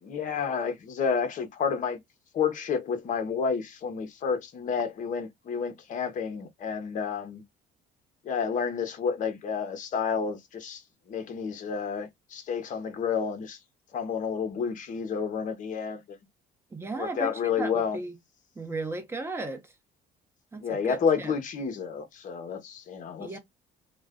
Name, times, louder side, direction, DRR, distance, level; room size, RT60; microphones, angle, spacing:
voice 1, 0.0-2.0 2.3-7.4 8.2-10.8 11.1-13.6 13.9-16.0 17.0-18.0 20.6-23.4, left 6 dB, 45° left, 0.7 m, -30 dB
voice 2, 16.7-18.1 18.6-19.6 20.5-21.3 23.2-23.4, right 2 dB, 15° right, 0.7 m, -35 dB
2.4 x 2.2 x 3.4 m
cardioid pair, 130°, 18 cm